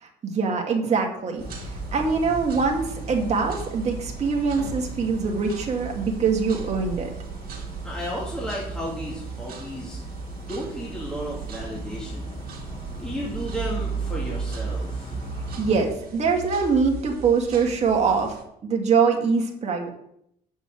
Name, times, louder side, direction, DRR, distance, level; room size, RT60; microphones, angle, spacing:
voice 1, 0.0-7.1 15.6-18.3 18.6-19.9, right 5 dB, 40° right, 1 dB, 2.2 m, -23 dB
sound 1, 1.4-15.8, left 1 dB, 30° left, 2.6 m, -40 dB
sound 2, 1.4-18.4, right 5 dB, 60° right, 2.2 m, -36 dB
voice 2, 7.8-10.0 10.5-12.3 13.0-15.2, equal, 5° left, -4 dB, 2.3 m, -33 dB
7.4 x 6.0 x 7.6 m, 0.74 s
cardioid pair, 110°, 17 cm